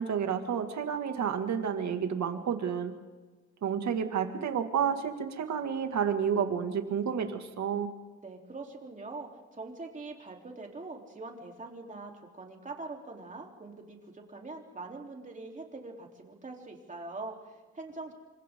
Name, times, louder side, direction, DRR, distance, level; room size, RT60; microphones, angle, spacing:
voice 1, 0.0-2.9 3.6-7.9, right 7 dB, 65° right, 6 dB, 2.3 m, -30 dB
voice 2, 8.2-18.1, right 3 dB, 25° right, 1 dB, 3.6 m, -43 dB
29.0 x 25.5 x 3.8 m, 1.3 s
cardioid pair, 130°, 30 cm